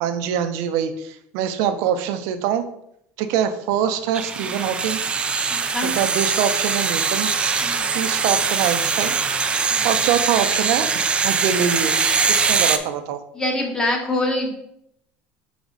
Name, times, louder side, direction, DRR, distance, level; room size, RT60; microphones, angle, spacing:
voice 1, 0.0-2.6 3.2-5.0 5.8-7.3 7.9-9.2 9.8-10.9 11.2-12.0 12.3-13.2, right 9 dB, 70° right, 9 dB, 0.6 m, -24 dB
sound 1, 4.1-12.8, right 5 dB, 20° right, 0.4 m, -22 dB
voice 2, 5.5-5.9 7.6-7.9 9.7-9.9 13.3-14.5, left 1 dB, 15° left, 1 dB, 1.1 m, -25 dB
5.0 x 4.0 x 4.7 m, 0.75 s
cardioid pair, 150°, 6 cm